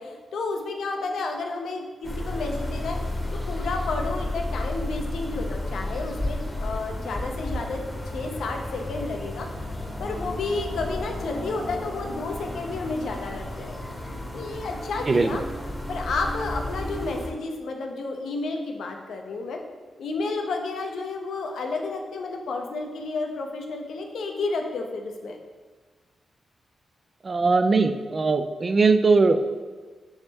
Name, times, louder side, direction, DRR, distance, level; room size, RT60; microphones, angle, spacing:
voice 1, 0.0-3.0 3.5-7.8 8.1-13.8 14.3-15.4 15.9-19.6 20.0-25.4, left 3 dB, 75° left, 3 dB, 0.5 m, -31 dB
sound 1, 2.0-17.3, left 1 dB, 20° left, 0.9 m, -32 dB
voice 2, 15.1-15.4 27.2-29.4, right 4 dB, 45° right, 9 dB, 0.3 m, -20 dB
3.6 x 3.2 x 4.0 m, 1.4 s
supercardioid pair, 50°, 0 cm